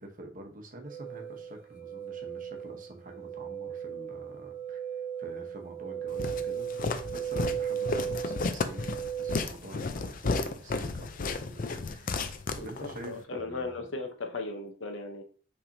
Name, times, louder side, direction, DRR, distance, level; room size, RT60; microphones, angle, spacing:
voice 1, 0.0-4.8 5.2-13.8, right 2 dB, 45° right, 3 dB, 0.9 m, -47 dB
sound 1, 0.8-9.3, right 8 dB, 25° right, 2.4 m, -36 dB
Walk footsteps, 6.2-13.1, left 3 dB, 45° left, 0.4 m, -33 dB
voice 2, 12.6-15.2, left 3 dB, 85° left, 5 dB, 0.8 m, -37 dB
5.7 x 3.4 x 2.7 m, 0.42 s
head